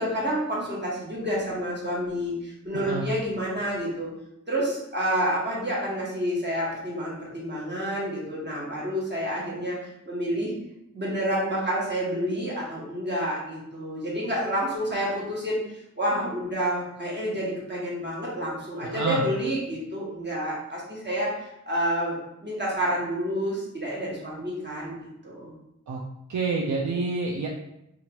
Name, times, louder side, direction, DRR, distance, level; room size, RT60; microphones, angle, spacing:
voice 1, 0.0-4.1 4.5-10.5 10.9-22.2 22.4-25.5, equal, 35° right, -5 dB, 1.1 m, -29 dB
voice 2, 2.7-3.1 18.8-19.2 25.9-26.0 26.3-27.5, right 3 dB, 70° right, -3 dB, 0.4 m, -28 dB
2.9 x 2.5 x 2.9 m, 0.81 s
wide cardioid pair, 45°, 31 cm